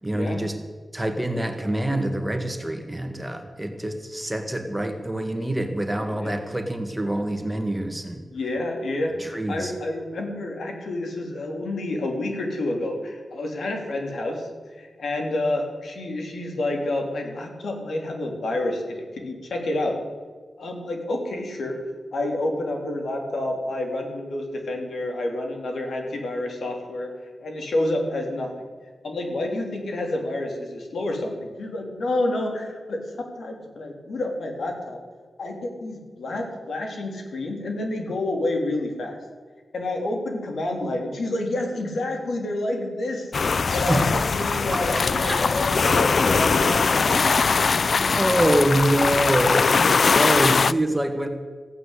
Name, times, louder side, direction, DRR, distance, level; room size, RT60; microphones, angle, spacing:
voice 1, 0.0-0.5 0.9-8.2 9.2-9.7 43.9-44.3 44.7-45.4 47.2-47.3 48.1-51.3, right 1 dB, 10° right, 6 dB, 1.7 m, -25 dB
voice 2, 6.1-6.4 8.3-14.5 14.8-20.0 20.6-21.8 22.1-27.1 27.4-28.6 29.0-35.0 35.4-39.2 39.7-47.3, left 1 dB, 80° left, 2 dB, 3.2 m, -29 dB
sound 1, 43.3-50.7, left 4 dB, 55° left, 0.4 m, -21 dB
15.5 x 9.2 x 8.4 m, 1.5 s
wide cardioid pair, 95°, 0 cm